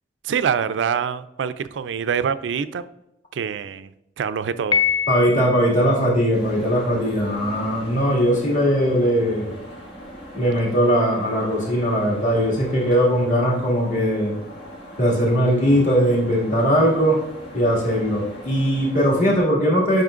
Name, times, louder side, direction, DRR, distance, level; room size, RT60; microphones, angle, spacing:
voice 1, 0.2-2.8 3.3-3.9 4.2-4.8, right 7 dB, 80° right, 13 dB, 0.3 m, -25 dB
Piano, 4.7-5.8, left 7 dB, 25° left, 0.4 m, -23 dB
voice 2, 5.1-9.5 10.3-14.4 15.0-17.2 17.5-20.0, equal, 45° left, -5 dB, 2.1 m, -20 dB
sound 1, 6.3-19.4, equal, 80° left, 2.7 m, -39 dB
9.2 x 5.5 x 2.5 m, 0.86 s
head